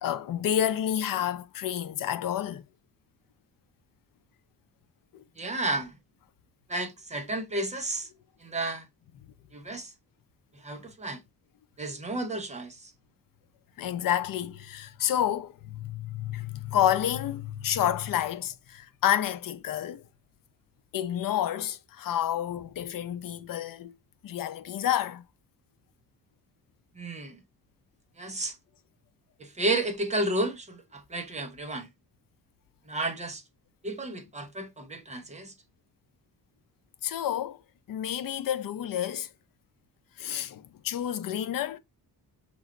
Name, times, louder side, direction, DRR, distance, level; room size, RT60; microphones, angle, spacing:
voice 1, 0.0-2.6 5.1-5.2 13.8-20.0 20.9-23.9 24.2-25.2 37.0-37.6 37.9-39.3 40.2-41.8, left 11 dB, 60° left, 0.6 m, -29 dB
voice 2, 5.4-6.0 6.7-8.1 8.4-8.9 9.5-9.9 10.6-11.2 11.8-12.9 26.9-27.4 28.2-28.6 29.4-31.9 32.9-33.4 33.8-35.5, right 2 dB, 20° right, 0.8 m, -32 dB
6.2 x 3.0 x 2.5 m
wide cardioid pair, 165°, 37 cm